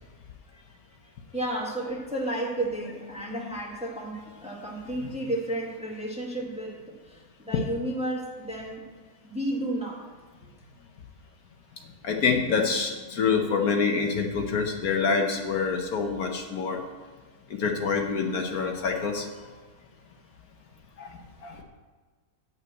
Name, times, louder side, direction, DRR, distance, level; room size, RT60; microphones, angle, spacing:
voice 1, 0.5-0.8 1.3-8.8 9.2-10.0 10.4-10.5 21.5-21.6, right 1 dB, 5° right, -2 dB, 1.3 m, -32 dB
voice 2, 12.0-16.8 17.5-19.3 21.0-21.1 21.4-21.6, left 5 dB, 65° left, 3 dB, 1.3 m, -26 dB
8.4 x 5.9 x 8.0 m, 1.4 s
omnidirectional pair, 1.8 m